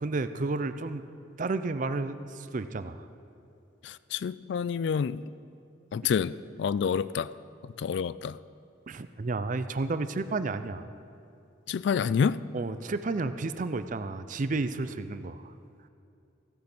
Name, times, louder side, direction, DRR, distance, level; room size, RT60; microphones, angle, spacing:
voice 1, 0.0-1.1 1.4-3.1 8.9-10.8 12.5-15.5, right 3 dB, 40° right, 12 dB, 0.5 m, -31 dB
voice 2, 3.8-5.3 5.9-7.3 7.6-8.4 11.7-12.5, left 6 dB, 60° left, 18 dB, 0.3 m, -28 dB
15.5 x 8.5 x 6.0 m, 2.6 s
head